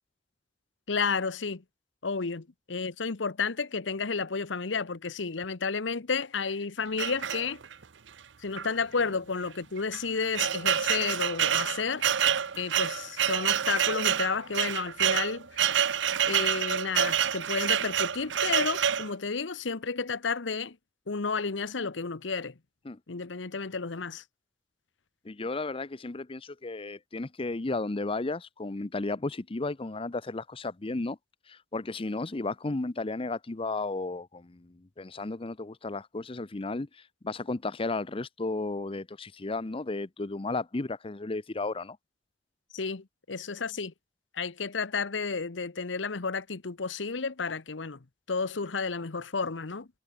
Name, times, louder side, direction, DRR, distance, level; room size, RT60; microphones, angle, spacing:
voice 1, 0.9-1.6 2.0-7.6 8.4-12.1 12.6-15.8 16.3-20.8 21.1-22.5 23.1-24.2 42.7-43.9 44.3-48.0 48.3-49.9, left 5 dB, 90° left, 1.0 m, -32 dB
sound 1, 7.0-7.8 8.6-8.7 9.0-9.1 9.8-19.1, right 9 dB, 75° right, 0.8 m, -27 dB
voice 2, 25.2-31.2 31.5-42.0, left 3 dB, 30° left, 0.7 m, -34 dB
head